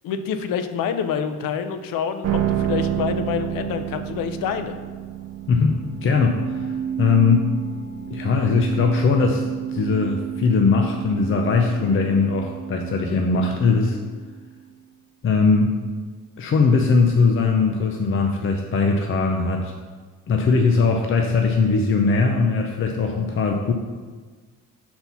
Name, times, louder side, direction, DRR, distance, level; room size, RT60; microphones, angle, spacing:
voice 1, 0.0-4.7, left 7 dB, 85° left, 9 dB, 0.7 m, -27 dB
sound 1, 2.2-14.5, right 10 dB, 50° right, 0.6 m, -30 dB
voice 2, 5.5-6.6 7.0-7.5 8.1-9.4 9.7-14.0 15.2-15.8 16.4-19.7 20.3-23.7, left 4 dB, 40° left, 2 dB, 0.6 m, -20 dB
6.0 x 4.3 x 5.5 m, 1.5 s
cardioid pair, 120°, 33 cm